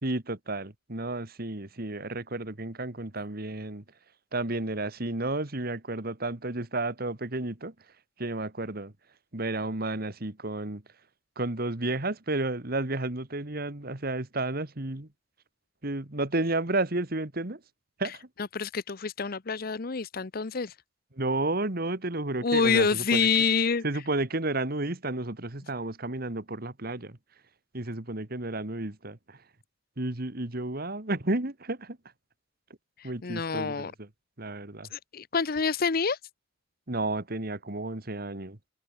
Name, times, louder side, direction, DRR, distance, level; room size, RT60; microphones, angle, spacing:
voice 1, 0.0-3.8 4.3-7.7 8.2-8.9 9.3-10.8 11.4-15.1 15.8-17.6 18.0-18.3 21.1-23.2 23.8-27.2 27.7-29.4 30.0-32.0 33.0-34.1 34.4-34.9 36.9-38.6, right 2 dB, 50° right, 2.1 m, -32 dB
voice 2, 18.5-20.7 22.4-23.8 33.0-33.9 34.9-36.2, left 5 dB, 50° left, 0.8 m, -27 dB
head